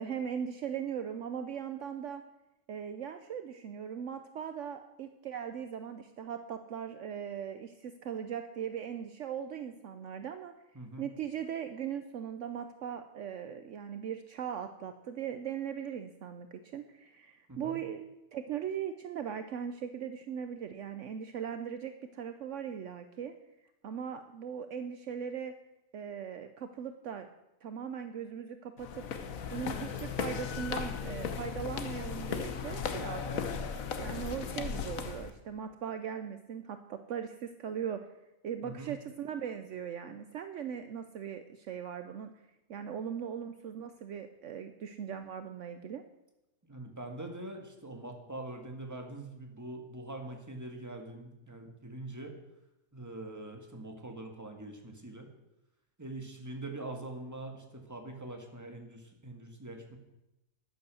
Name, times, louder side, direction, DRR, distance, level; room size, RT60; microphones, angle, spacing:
voice 1, 0.0-2.2 2.7-10.5 11.0-23.3 23.8-25.5 25.9-27.3 27.6-29.1 29.5-33.4 34.0-38.1 38.4-42.3 42.7-46.0, right 8 dB, 65° right, 9 dB, 1.0 m, -39 dB
voice 2, 10.7-11.1 17.5-17.8 38.6-39.0 46.7-52.4 52.9-55.3 56.0-60.0, right 2 dB, 10° right, 3 dB, 1.8 m, -43 dB
sound 1, 28.8-35.3, left 6 dB, 75° left, 1.4 m, -36 dB
12.5 x 9.6 x 6.3 m, 0.94 s
omnidirectional pair, 1.4 m